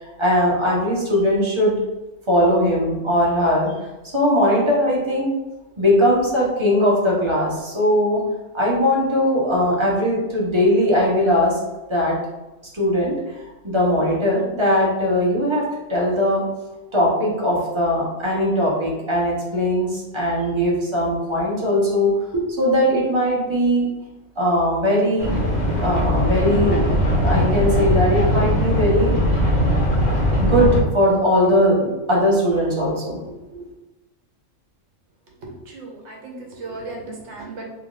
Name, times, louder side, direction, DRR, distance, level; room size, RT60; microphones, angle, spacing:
voice 1, 0.0-1.7 2.3-3.7 4.1-5.3 5.8-8.2 8.5-11.5 11.9-12.2 12.7-13.1 13.6-16.4 16.9-23.9 24.4-25.3 25.8-29.1 30.4-33.2, equal, 25° right, -4 dB, 0.8 m, -20 dB
sound 1, 25.2-30.8, equal, 45° left, 0.9 m, -20 dB
voice 2, 35.4-37.7, right 3 dB, 65° right, -1 dB, 1.1 m, -36 dB
3.5 x 3.0 x 2.4 m, 1.1 s
omnidirectional pair, 1.3 m